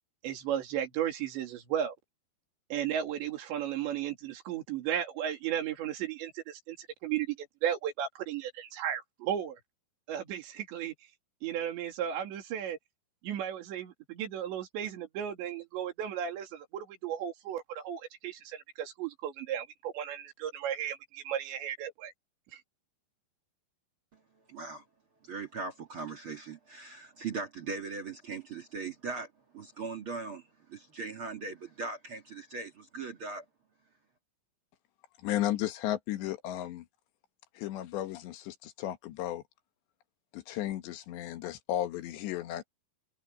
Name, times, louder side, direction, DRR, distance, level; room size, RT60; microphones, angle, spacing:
voice 1, 0.2-1.9 2.7-9.6 10.1-10.9 11.4-12.8 13.2-22.1 22.5-22.6, right 10 dB, 85° right, 5.0 m, -35 dB
voice 2, 24.5-24.8 25.2-29.3 29.5-33.4, right 4 dB, 50° right, 1.6 m, -39 dB
voice 3, 35.2-36.9 37.6-39.4 40.3-42.7, left 13 dB, 80° left, 3.7 m, -34 dB
omnidirectional pair, 5.0 m